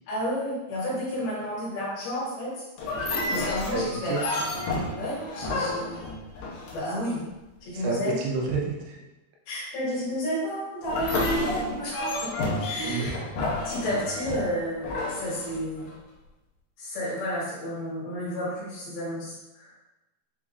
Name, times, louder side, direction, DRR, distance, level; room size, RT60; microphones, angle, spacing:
voice 1, 0.1-2.7 3.3-4.1 5.0-6.1 6.7-7.2 7.6-8.1 9.5-12.3 12.6-13.2 13.6-15.9 16.8-19.7, equal, 65° left, -8 dB, 3.4 m, -31 dB
sound 1, 2.8-7.1 10.8-15.9, left 2 dB, 90° left, 1.9 m, -30 dB
voice 2, 3.7-4.5 7.7-9.0 12.9-13.1, right 3 dB, 85° right, -1 dB, 3.1 m, -29 dB
7.3 x 2.8 x 2.4 m, 1.0 s
omnidirectional pair, 5.0 m